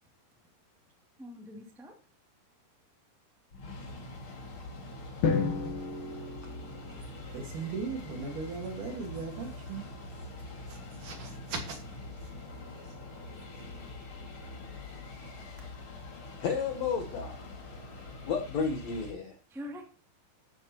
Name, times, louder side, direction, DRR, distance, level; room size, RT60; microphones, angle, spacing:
voice 1, 1.2-1.9 12.5-12.6 19.5-19.9, left 1 dB, ahead, 0 dB, 1.0 m, -44 dB
sound 1, 3.5-19.1, left 2 dB, 40° left, 2.4 m, -44 dB
Drum, 5.2-7.4, left 5 dB, 60° left, 3.1 m, -32 dB
voice 2, 6.9-10.0 10.6-13.1 13.5-13.6, right 4 dB, 55° right, 3 dB, 2.9 m, -40 dB
voice 3, 16.4-17.6 18.3-19.4, left 6 dB, 85° left, 4 dB, 1.5 m, -32 dB
12.5 x 11.0 x 2.9 m, 0.38 s
omnidirectional pair, 4.9 m